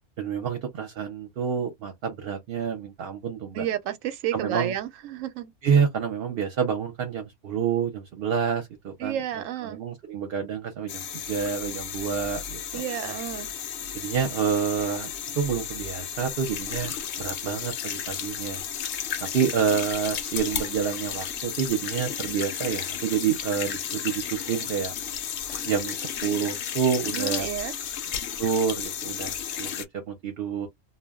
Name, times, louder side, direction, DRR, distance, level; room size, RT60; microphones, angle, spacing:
voice 1, 0.2-3.6 4.3-4.7 5.6-9.2 9.6-12.6 13.9-15.1 15.4-18.6 19.3-24.9 25.6-27.5 28.4-30.7, right 7 dB, 55° right, 0.8 m, -28 dB
voice 2, 3.5-5.5 9.0-9.8 12.7-13.5 27.2-27.8, right 11 dB, 90° right, 1.0 m, -31 dB
sound 1, 10.9-29.9, left 9 dB, 65° left, 0.8 m, -33 dB
2.2 x 2.1 x 3.5 m
omnidirectional pair, 1.3 m